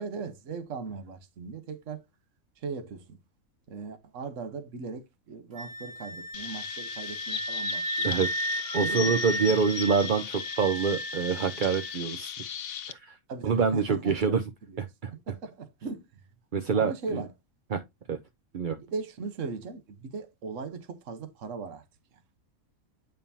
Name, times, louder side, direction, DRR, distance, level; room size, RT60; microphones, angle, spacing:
voice 1, 0.0-2.0 2.6-3.2 3.7-8.1 8.8-9.6 13.3-14.4 14.7-14.9 15.1-16.1 16.7-17.3 18.7-21.8, right 4 dB, 60° right, 1.4 m, -38 dB
Wind instrument woodwind instrument, 5.5-11.9, right 1 dB, 80° right, 2.0 m, -34 dB
Chirp tweet, 6.3-12.9, left 9 dB, 75° left, 1.2 m, -37 dB
voice 2, 8.7-12.3 12.9-13.2 13.4-14.4 14.8-15.1 16.5-17.2 17.7-17.8 18.1-18.2 18.5-18.8, right 6 dB, 45° right, 0.7 m, -26 dB
8.9 x 5.2 x 2.7 m
omnidirectional pair, 1.5 m